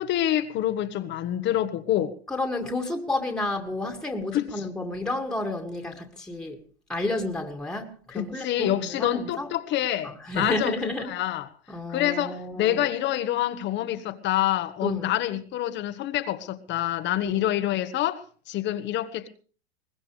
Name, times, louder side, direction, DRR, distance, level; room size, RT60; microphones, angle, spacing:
voice 1, 0.0-2.1 4.3-4.5 8.1-11.4 11.9-19.3, left 12 dB, 35° left, 1.3 m, -27 dB
voice 2, 2.3-6.6 6.9-9.5 10.0-11.1 11.7-12.9 14.8-15.1 17.2-17.5, left 2 dB, ahead, 2.1 m, -31 dB
22.0 x 19.5 x 3.3 m
hypercardioid pair, 120°, 33 cm